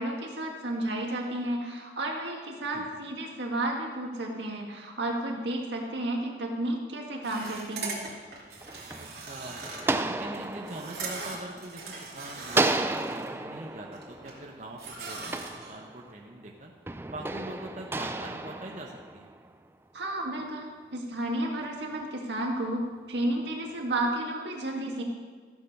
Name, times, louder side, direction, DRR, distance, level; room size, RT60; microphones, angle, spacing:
voice 1, 0.0-8.0 19.9-22.8 23.1-25.0, right 1 dB, 90° right, 1 dB, 1.8 m, -32 dB
sound 1, 7.2-13.3 13.7-14.5 14.8-15.8, right 4 dB, 70° right, 2.7 m, -40 dB
sound 2, 8.3-12.0 12.5-16.3 16.9-19.5, right 2 dB, 15° right, 0.3 m, -33 dB
voice 2, 8.9-9.6 10.1-16.7 17.1-19.3, right 1 dB, 45° right, 0 dB, 0.9 m, -43 dB
14.5 x 7.0 x 5.5 m, 1.5 s
head